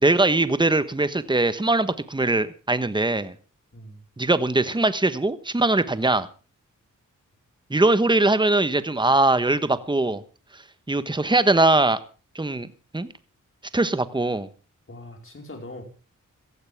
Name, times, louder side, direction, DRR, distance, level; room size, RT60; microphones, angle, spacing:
voice 1, 0.0-3.3 4.2-6.3 7.7-10.2 10.9-12.0 12.3-12.7 12.9-13.1 13.7-14.5, right 2 dB, 15° right, 1.2 m, -21 dB
voice 2, 3.7-4.0 14.9-15.8, left 1 dB, 40° left, 4.9 m, -41 dB
16.5 x 15.0 x 3.6 m
cardioid pair, 65°, 32 cm